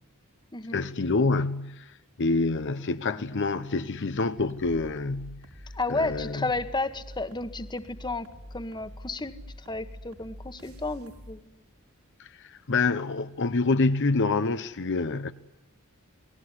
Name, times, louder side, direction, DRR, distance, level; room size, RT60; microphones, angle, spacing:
voice 1, 0.7-5.4 5.9-6.5 12.2-15.3, left 3 dB, 55° left, 0.8 m, -27 dB
sound 1, 4.5-11.3, equal, 75° right, 4.8 m, -46 dB
voice 2, 5.7-8.3 8.5-11.6, left 3 dB, 20° left, 1.4 m, -32 dB
28.5 x 20.0 x 9.8 m
head